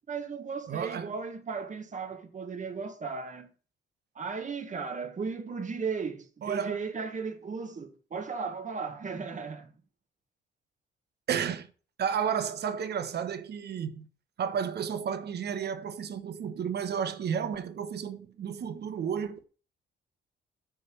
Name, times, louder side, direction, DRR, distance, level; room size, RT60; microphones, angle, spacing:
voice 1, 0.1-3.5 4.1-9.7, right 5 dB, 40° right, 1.6 m, -36 dB
voice 2, 0.7-1.1 6.4-6.8 11.3-11.7 12.0-14.0 14.4-19.4, right 7 dB, 55° right, 1.1 m, -32 dB
9.3 x 3.5 x 6.8 m
cardioid pair, 90°, 20 cm